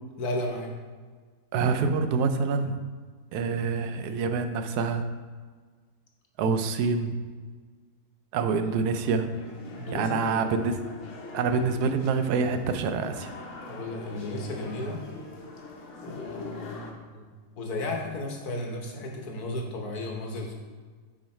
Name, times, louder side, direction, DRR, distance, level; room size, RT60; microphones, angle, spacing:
voice 1, 0.2-0.7 9.8-10.5 13.7-15.0 16.0-17.2 17.6-20.5, left 2 dB, 75° left, 1 dB, 1.6 m, -34 dB
voice 2, 1.5-2.8 3.3-5.0 6.4-7.2 8.3-9.3 9.9-10.8 11.3-13.3, right 5 dB, 85° right, 8 dB, 1.1 m, -26 dB
sound 1, 9.3-16.9, left 2 dB, 55° left, 1.2 m, -43 dB
6.3 x 5.1 x 4.3 m, 1.5 s
omnidirectional pair, 1.7 m